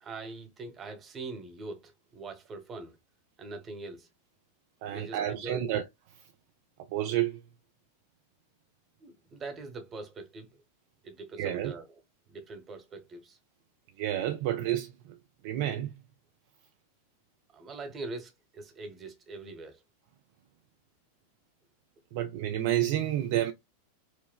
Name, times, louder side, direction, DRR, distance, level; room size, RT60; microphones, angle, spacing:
voice 1, 0.0-3.0 3.4-4.1 4.9-5.7 9.0-10.6 11.0-11.9 12.3-13.4 17.5-19.8, right 3 dB, 25° right, 0.9 m, -43 dB
voice 2, 4.8-5.8 6.9-7.4 11.4-11.7 14.0-14.9 15.4-16.0 22.1-23.5, right 12 dB, 50° right, 0.4 m, -29 dB
4.5 x 2.0 x 2.3 m
figure-of-eight pair, 90°, 0 cm